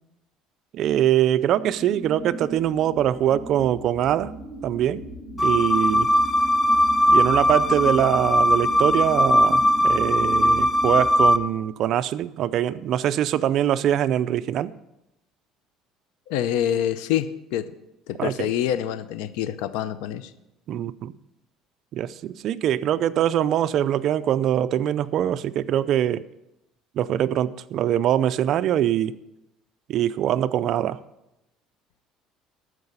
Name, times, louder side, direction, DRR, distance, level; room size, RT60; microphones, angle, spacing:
voice 1, 0.7-4.3 4.6-5.1 5.4-6.1 7.1-14.7 18.2-18.5 20.7-21.1 21.9-26.2 27.0-29.2 29.9-31.0, right 11 dB, 50° right, 12 dB, 0.4 m, -23 dB
sound 1, 1.5-11.3, equal, 10° right, 4.4 m, -37 dB
sound 2, 5.4-11.4, equal, 15° left, 0.5 m, -19 dB
voice 2, 16.3-17.8 18.1-20.3, left 10 dB, 85° left, 14 dB, 0.6 m, -26 dB
12.5 x 4.8 x 8.0 m, 0.90 s
cardioid pair, 145°, 0 cm